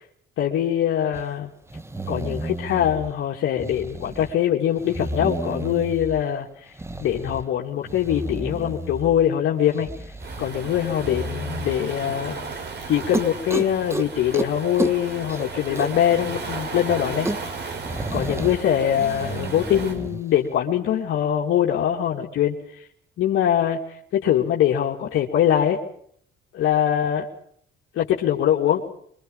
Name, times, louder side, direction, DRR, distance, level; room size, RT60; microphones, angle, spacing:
voice 1, 0.4-1.5 2.1-6.7 7.0-9.9 10.4-12.5 12.9-17.3 18.1-22.9 23.2-25.8 26.5-27.3 27.9-28.8, left 10 dB, 80° left, -1 dB, 2.8 m, -23 dB
sound 1, 1.1-1.2 1.7-3.1 3.6-4.3 4.8-6.2 6.8-7.5 7.9-9.3 9.6-10.5 11.0-11.8 12.4-12.5 12.8-12.9 13.1-14.1 14.3-14.5 14.7-16.1 16.4-16.5 16.8-16.9 17.0-18.6 18.9-20.2, right 1 dB, 15° right, 1.6 m, -31 dB
Waves surf, 10.2-20.0, right 4 dB, 60° right, 5.8 m, -35 dB
25.0 x 23.0 x 5.6 m, 0.64 s
cardioid pair, 90°, 20 cm